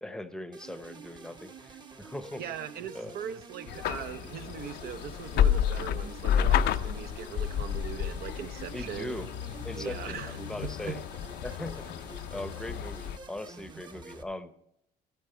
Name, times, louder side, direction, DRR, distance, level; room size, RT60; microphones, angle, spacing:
voice 1, 0.0-2.4 2.9-3.2 8.7-9.3 9.6-11.0 11.4-14.5, left 1 dB, 5° left, 11 dB, 0.8 m, -40 dB
sound 1, 0.5-14.2, right 3 dB, 25° right, 0.9 m, -48 dB
voice 2, 2.3-9.2 9.7-11.0, right 8 dB, 65° right, 11 dB, 0.8 m, -40 dB
sound 2, 3.7-13.2, left 9 dB, 75° left, 0.5 m, -31 dB
12.5 x 8.9 x 4.5 m, 0.77 s
cardioid pair, 110°, 17 cm